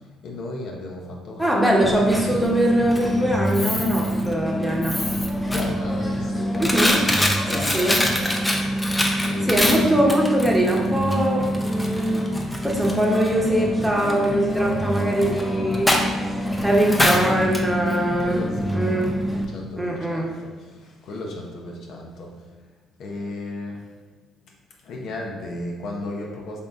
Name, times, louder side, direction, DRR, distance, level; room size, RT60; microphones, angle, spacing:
voice 1, 0.2-2.1 4.0-4.2 5.5-6.8 7.4-8.4 9.2-9.9 18.2-22.4 23.0-23.9 24.8-26.6, left 2 dB, 65° left, -1 dB, 0.6 m, -35 dB
voice 2, 1.4-5.0 6.6-7.0 7.5-8.0 9.4-12.4 12.6-19.1 19.8-20.3, right 1 dB, 5° right, -2 dB, 0.9 m, -22 dB
Coin (dropping), 1.7-19.4, equal, 10° left, 0.6 m, -24 dB
3.6 x 2.6 x 3.5 m, 1.3 s
supercardioid pair, 65°, 0 cm